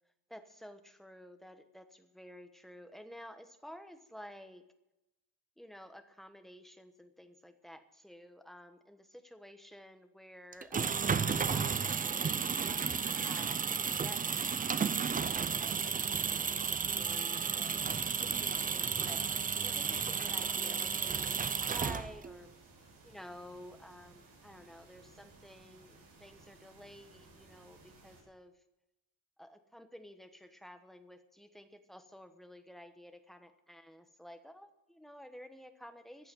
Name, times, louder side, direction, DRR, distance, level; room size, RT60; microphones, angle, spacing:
voice 1, 0.3-4.6 5.6-12.7 13.2-22.5 23.1-28.5 29.4-36.3, equal, ahead, 7 dB, 1.1 m, -52 dB
sound 1, 10.5-22.4, right 6 dB, 20° right, 0.4 m, -33 dB
sound 2, 10.8-28.2, right 3 dB, 55° right, 7.4 m, -59 dB
14.0 x 8.8 x 8.9 m, 0.92 s
cardioid pair, 150°, 44 cm